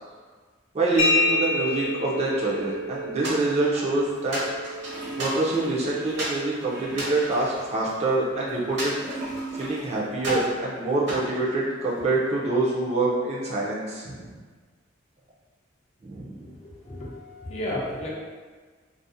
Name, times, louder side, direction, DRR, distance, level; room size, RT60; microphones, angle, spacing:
voice 1, 0.7-4.8 5.2-9.0 9.5-14.3 16.0-16.5, right 2 dB, 35° right, -5 dB, 0.4 m, -26 dB
sound 1, 1.0-8.5, left 1 dB, 80° left, 0.6 m, -30 dB
sound 2, 3.2-3.9 4.3-5.7 6.2-6.4 6.9-8.2 8.8-9.8 10.2-10.6 11.1-12.1, right 1 dB, 60° right, 0.8 m, -33 dB
Gurgling / Toilet flush, 4.0-10.1 10.3-10.4, right 2 dB, 80° right, 1.1 m, -40 dB
voice 2, 16.6-18.1, left 1 dB, 35° left, -5 dB, 0.4 m, -33 dB
2.4 x 2.0 x 2.6 m, 1.5 s
head